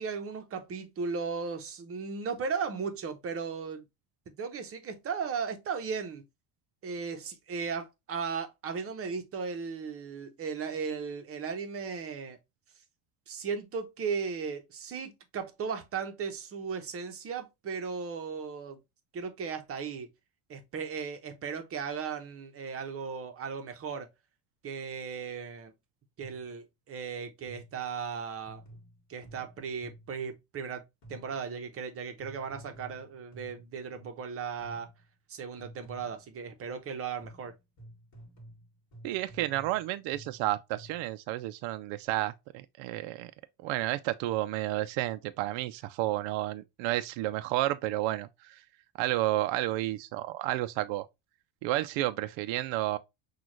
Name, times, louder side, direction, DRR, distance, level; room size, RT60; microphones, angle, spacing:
voice 1, 0.0-3.8 4.3-6.3 6.8-12.4 13.3-18.8 19.1-20.1 20.5-24.1 24.6-25.7 26.2-28.6 29.1-30.8 31.1-34.9 35.3-37.5, right 5 dB, 30° right, 0.7 m, -36 dB
sound 1, 26.2-26.6 27.4-27.9 28.4-30.3 31.0-31.5 32.2-34.3 34.6-35.1 35.6-36.3 37.2-41.2, right 1 dB, 35° left, 1.9 m, -52 dB
voice 2, 39.0-43.3 43.6-48.6 49.0-51.1 51.6-53.0, right 16 dB, 65° right, 0.5 m, -31 dB
6.1 x 2.4 x 3.0 m
cardioid pair, 155°, 49 cm